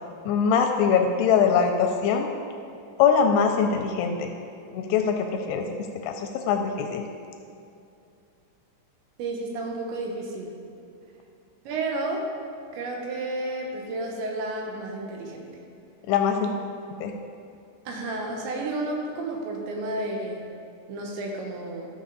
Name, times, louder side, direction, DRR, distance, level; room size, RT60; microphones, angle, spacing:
voice 1, 0.3-2.3 3.0-4.3 4.7-5.7 6.0-7.0 16.1-16.5 17.0-17.1, left 6 dB, 85° left, 4 dB, 2.5 m, -22 dB
voice 2, 9.2-10.5 11.7-12.3 12.7-15.5 17.9-20.4 20.9-21.9, right 2 dB, 85° right, 0 dB, 3.5 m, -31 dB
12.5 x 6.6 x 4.0 m, 2.6 s
omnidirectional pair, 5.1 m